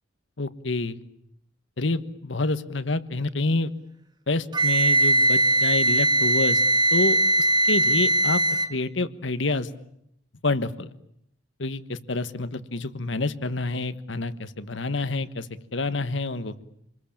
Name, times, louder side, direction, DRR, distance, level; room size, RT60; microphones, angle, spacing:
voice 1, 0.4-1.0 1.8-3.7 4.3-6.6 6.9-7.2 7.7-8.4 8.7-9.7 10.4-10.9 11.6-15.5 15.7-16.6, left 3 dB, 75° left, 12 dB, 1.4 m, -27 dB
Wind instrument woodwind instrument, 4.5-8.7, right 2 dB, 20° right, 1.6 m, -20 dB
28.0 x 21.5 x 8.8 m, 0.76 s
head